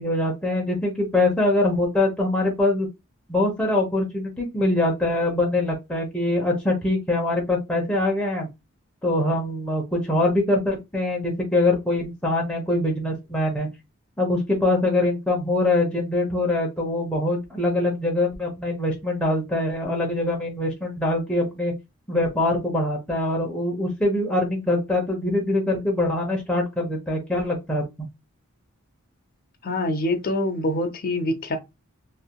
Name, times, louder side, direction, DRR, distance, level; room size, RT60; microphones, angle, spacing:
voice 1, 0.0-2.9 3.3-8.5 9.0-13.7 14.2-21.7 22.1-27.8, left 2 dB, 5° left, 0.9 m, -23 dB
voice 2, 29.6-31.6, left 1 dB, 40° left, 0.7 m, -25 dB
3.3 x 2.7 x 2.3 m
head